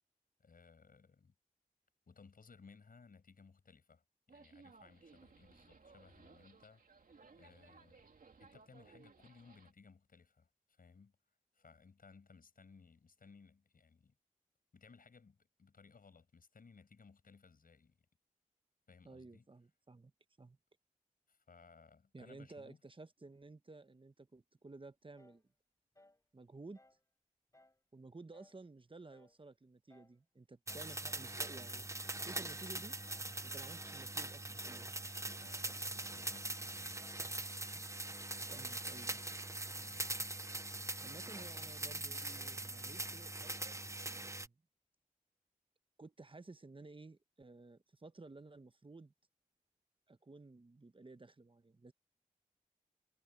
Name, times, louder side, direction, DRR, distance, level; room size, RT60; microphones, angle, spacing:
voice 1, 0.4-1.3 2.1-6.8 7.4-8.1 8.4-11.1 11.5-14.1 14.7-18.1 18.9-19.5 21.3-22.8 35.3-37.3 39.9-40.1 41.4-41.5, left 5 dB, 85° left, 7.2 m, -62 dB
sound 1, 4.3-9.7, right 4 dB, 75° right, 2.7 m, -61 dB
voice 2, 19.0-20.1 20.4-20.6 22.1-25.4 26.3-26.8 27.9-32.9 33.4-34.9 38.5-39.2 41.0-43.8 44.0-44.6 46.0-49.1 50.1-51.9, right 3 dB, 35° right, 1.0 m, -54 dB
sound 2, 25.2-25.5 25.9-26.2 26.7-27.0 27.5-27.8 28.3-28.6 29.1-29.4 29.9-30.2 30.7-31.0 31.5-31.8 32.3-32.6 33.1-33.4 33.8-34.2 34.6-34.9 35.4-35.7 36.2-36.5 37.0-37.3, left 1 dB, 20° left, 4.4 m, -67 dB
sound 3, 30.7-44.5, right 2 dB, 20° right, 0.8 m, -42 dB
cardioid pair, 45°, 14 cm